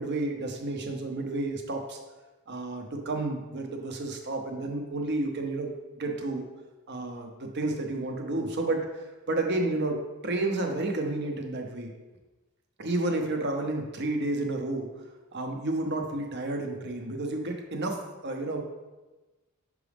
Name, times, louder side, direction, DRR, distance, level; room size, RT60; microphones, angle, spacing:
voice 1, 0.0-2.0 2.5-6.4 6.9-8.9 9.3-10.0 10.2-11.9 12.8-14.9 15.3-18.6, right 2 dB, 55° right, 3 dB, 0.8 m, -31 dB
6.1 x 4.8 x 3.4 m, 1.2 s
head